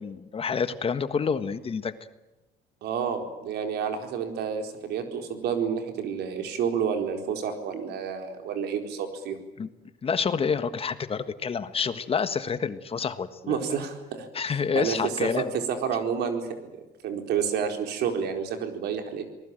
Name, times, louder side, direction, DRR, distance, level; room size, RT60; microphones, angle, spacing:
voice 1, 0.0-1.9 9.6-9.7 10.0-13.6 14.3-15.5, left 6 dB, 35° left, 11 dB, 1.5 m, -28 dB
voice 2, 2.8-9.4 13.5-19.2, right 7 dB, 75° right, 5 dB, 4.3 m, -30 dB
26.5 x 19.5 x 9.1 m, 1.1 s
cardioid pair, 110°, 17 cm